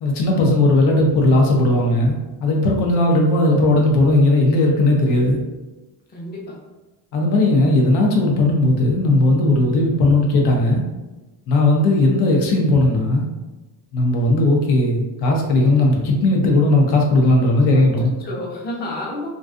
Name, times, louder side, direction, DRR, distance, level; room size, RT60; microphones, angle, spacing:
voice 1, 0.0-2.2 2.4-5.4 7.1-10.8 11.5-13.2 13.9-18.1, left 2 dB, 75° left, 0 dB, 0.7 m, -17 dB
voice 2, 6.1-6.6 17.7-19.3, left 1 dB, 25° left, -3 dB, 0.6 m, -31 dB
2.4 x 2.3 x 2.4 m, 1.1 s
cardioid pair, 120°, 40 cm